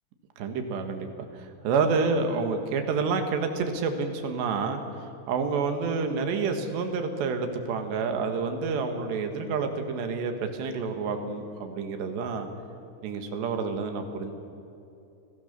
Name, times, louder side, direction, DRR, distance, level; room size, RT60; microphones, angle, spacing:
voice 1, 0.4-12.5 13.0-14.3, right 4 dB, 65° right, 6 dB, 3.5 m, -29 dB
29.5 x 18.5 x 6.8 m, 2.7 s
omnidirectional pair, 5.9 m